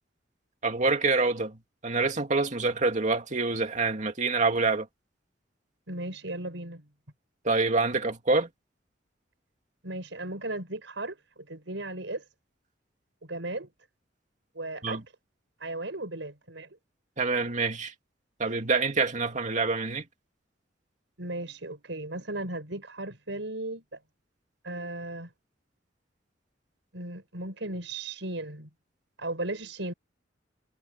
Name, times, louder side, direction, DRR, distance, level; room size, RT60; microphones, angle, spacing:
voice 1, 0.6-1.6 1.8-4.9 7.4-8.5 14.8-15.0 17.2-17.9 18.4-20.0, right 3 dB, 40° right, 2.3 m, -26 dB
voice 2, 5.9-6.9 9.8-12.2 13.2-13.7 14.5-15.0 15.6-16.7 21.2-24.0 24.6-25.3 26.9-28.7 29.2-29.9, right 2 dB, 80° right, 5.6 m, -36 dB
head